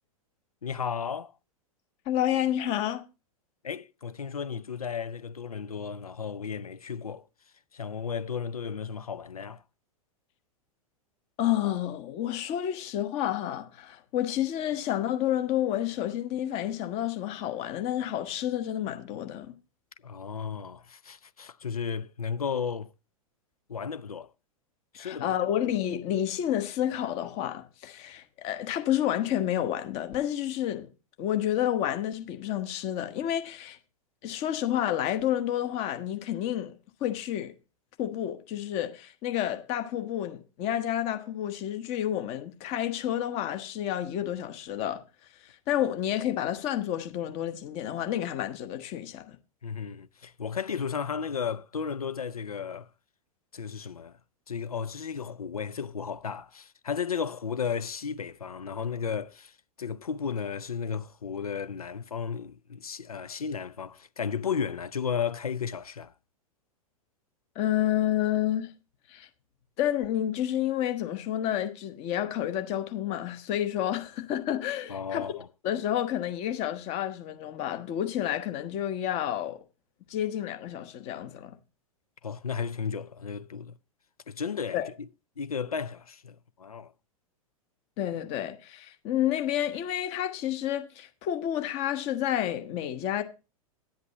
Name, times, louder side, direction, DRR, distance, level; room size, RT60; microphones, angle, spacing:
voice 1, 0.6-1.3 3.6-7.2 7.7-9.6 20.0-22.9 23.7-24.3 25.0-25.4 49.6-52.9 53.5-54.1 54.5-59.5 59.8-66.1 74.9-75.5 82.2-83.8 84.3-85.1 85.4-86.9, left 6 dB, 80° left, 0.5 m, -34 dB
voice 2, 2.1-3.0 11.4-19.6 25.0-30.9 31.2-33.8 34.2-36.7 37.0-37.5 38.0-45.0 45.7-49.4 67.5-68.7 69.1-69.3 69.8-75.3 75.6-79.6 80.1-81.5 84.7-84.9 88.0-93.2, left 11 dB, 35° left, 1.1 m, -30 dB
10.0 x 8.1 x 4.0 m
figure-of-eight pair, 100°, 19 cm